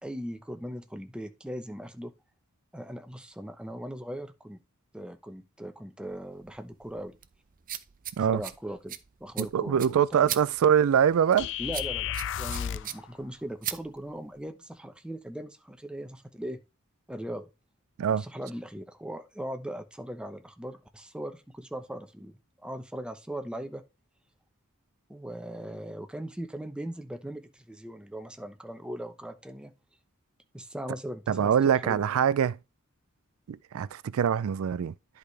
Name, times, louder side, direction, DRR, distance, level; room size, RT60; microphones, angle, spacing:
voice 1, 0.0-2.1 2.7-4.6 4.9-7.1 8.3-10.3 11.6-16.6 17.1-17.5 18.1-23.8 25.1-29.7 30.5-31.5 31.8-32.0, equal, 5° right, 0.8 m, -39 dB
sound 1, 6.1-14.5, right 11 dB, 40° right, 0.6 m, -41 dB
voice 2, 9.5-11.5 18.0-18.2 31.3-32.6 33.5-34.9, right 8 dB, 85° right, 0.3 m, -24 dB
sound 2, 11.4-13.0, left 9 dB, 60° left, 0.4 m, -33 dB
10.5 x 5.0 x 3.3 m
head